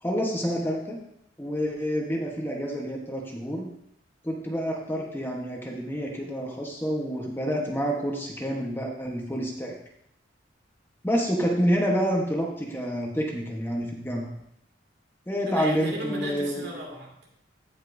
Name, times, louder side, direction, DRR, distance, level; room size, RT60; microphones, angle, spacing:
voice 1, 0.0-1.0 1.4-3.7 4.2-9.7 11.0-14.3 15.3-16.7, equal, 10° left, 0 dB, 1.1 m, -28 dB
voice 2, 15.5-17.3, equal, 60° right, -1 dB, 2.2 m, -35 dB
15.5 x 5.4 x 2.6 m, 0.75 s
head